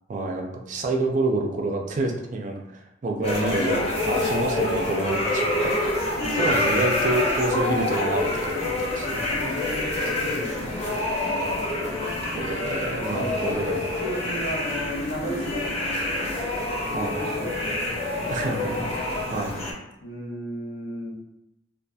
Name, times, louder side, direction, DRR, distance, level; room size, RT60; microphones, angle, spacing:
voice 1, 0.1-5.7 6.3-9.2 12.3-13.8 16.9-17.1 18.3-19.5, right 2 dB, 40° right, 2 dB, 0.3 m, -28 dB
sound 1, 3.2-19.7, left 2 dB, 30° left, 0.5 m, -27 dB
voice 2, 6.1-6.6 9.3-11.7 13.1-16.3 17.0-18.7 20.0-21.1, equal, 90° left, -3 dB, 0.7 m, -35 dB
2.6 x 2.4 x 2.3 m, 0.85 s
head